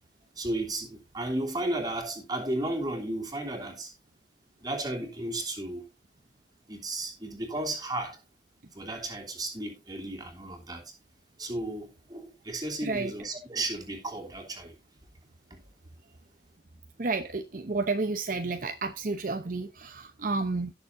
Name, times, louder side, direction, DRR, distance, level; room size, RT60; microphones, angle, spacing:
voice 1, 0.4-3.9 4.6-5.9 6.7-8.2 8.7-10.9 11.4-14.7 15.5-15.6, right 1 dB, 20° right, 3.0 m, -34 dB
voice 2, 12.8-13.1 17.0-20.7, right 3 dB, 50° right, 0.8 m, -31 dB
17.0 x 7.0 x 2.6 m
head